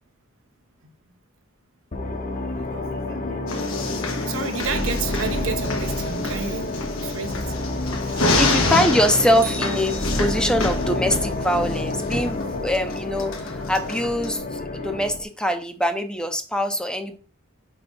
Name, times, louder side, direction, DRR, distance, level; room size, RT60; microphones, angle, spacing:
sound 1, 1.9-15.2, left 2 dB, 40° left, 0.9 m, -28 dB
voice 1, 2.5-3.5 4.3-7.5 8.0-8.5, right 5 dB, 80° right, 1.0 m, -32 dB
sound 2, 3.5-14.3, left 2 dB, 90° left, 1.3 m, -28 dB
voice 2, 8.4-17.2, equal, 5° left, 0.6 m, -23 dB
sound 3, 9.4-10.8, right 4 dB, 45° right, 1.1 m, -39 dB
5.1 x 4.3 x 5.2 m
head